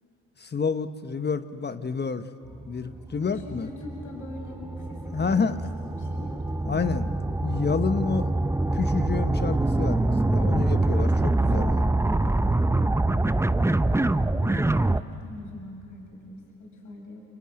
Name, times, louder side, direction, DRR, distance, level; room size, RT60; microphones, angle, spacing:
voice 1, 0.4-2.3 2.7-3.7 5.1-5.5 6.7-7.1 7.4-8.3 8.7-11.8, left 5 dB, 30° left, 10 dB, 1.1 m, -29 dB
sound 1, 2.5-15.0, right 2 dB, 10° right, 0.7 m, -25 dB
voice 2, 3.2-7.1 13.9-17.2, left 2 dB, 60° left, 1 dB, 6.5 m, -42 dB
29.0 x 25.0 x 7.7 m, 2.7 s
supercardioid pair, 60°, 33 cm